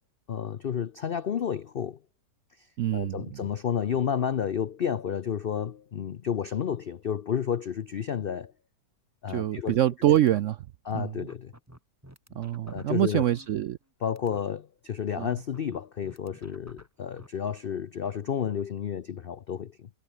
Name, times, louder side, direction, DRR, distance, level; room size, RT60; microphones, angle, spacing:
voice 1, 0.3-2.0 2.9-8.5 9.2-9.8 10.9-11.5 12.6-13.2 14.0-19.9, left 8 dB, 70° left, 0.5 m, -31 dB
voice 2, 2.8-3.4 9.3-10.6 10.9-11.3 12.3-13.8 15.2-15.4, right 12 dB, 75° right, 0.7 m, -25 dB
sound 1, 9.3-9.9 10.2-10.4 10.9-11.0 11.3-13.9 14.2-14.4 15.3-17.3, right 1 dB, 10° right, 4.5 m, -51 dB
omnidirectional pair, 1.8 m